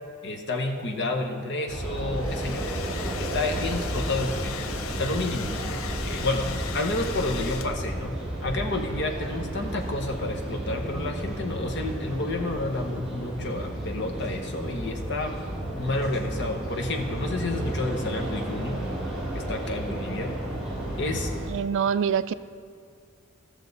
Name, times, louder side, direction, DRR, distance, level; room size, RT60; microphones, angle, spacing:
voice 1, 0.2-2.6 3.2-5.5 6.0-8.1 8.4-15.4 15.8-18.8 19.3-20.3 21.0-21.3, left 2 dB, 60° left, 3 dB, 1.1 m, -30 dB
sound 1, 1.7-21.5, right 1 dB, 5° right, 2.6 m, -32 dB
Domestic sounds home sounds, 2.0-8.0, left 8 dB, 85° left, 0.5 m, -38 dB
voice 2, 21.5-22.3, right 7 dB, 65° right, 14 dB, 0.3 m, -25 dB
15.5 x 6.4 x 4.0 m, 2.3 s
head